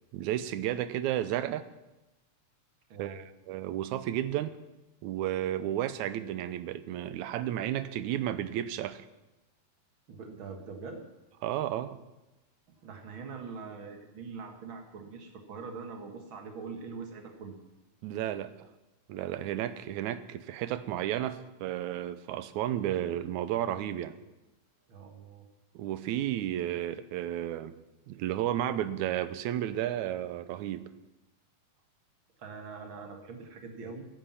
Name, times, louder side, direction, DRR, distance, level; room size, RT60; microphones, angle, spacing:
voice 1, 0.1-1.6 3.0-4.6 5.0-9.1 11.4-12.0 18.0-18.5 19.1-24.1 25.8-27.7 28.1-30.9, right 12 dB, 90° right, 13 dB, 2.1 m, -32 dB
voice 2, 2.9-3.3 10.1-11.0 12.8-17.6 24.9-25.5 32.4-34.1, right 5 dB, 45° right, 3 dB, 2.2 m, -43 dB
15.5 x 10.5 x 5.8 m, 1.0 s
omnidirectional pair, 3.4 m